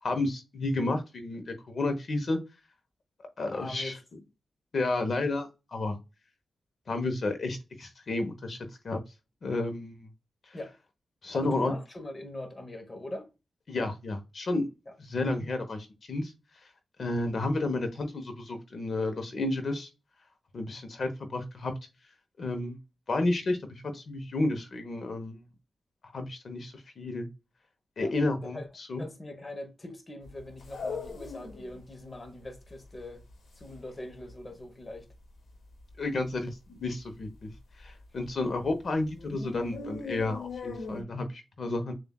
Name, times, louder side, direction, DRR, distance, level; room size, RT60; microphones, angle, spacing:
voice 1, 0.0-2.4 3.4-4.0 4.7-6.0 6.9-8.6 8.8-9.0 9.4-10.1 10.5-10.6 11.2-11.7 13.7-14.7 15.0-16.3 17.0-19.9 20.5-21.7 22.4-22.8 23.1-25.4 26.1-27.3 28.0-29.0 36.0-37.5 37.8-41.9, left 2 dB, 50° left, 1.0 m, -31 dB
voice 2, 3.5-4.0 10.5-10.8 11.3-13.3 14.9-15.0 28.0-28.1 28.4-28.7 29.0-33.2 33.6-35.1, left 1 dB, 25° left, 1.0 m, -42 dB
sound 1, 30.2-31.8 32.1-32.2 32.4-34.7 35.0-35.2 35.5-36.0 36.4-36.5 36.9-37.0 37.4-38.7 39.0-41.0, left 4 dB, 80° left, 1.3 m, -40 dB
7.0 x 2.6 x 2.3 m
wide cardioid pair, 135°, 0 cm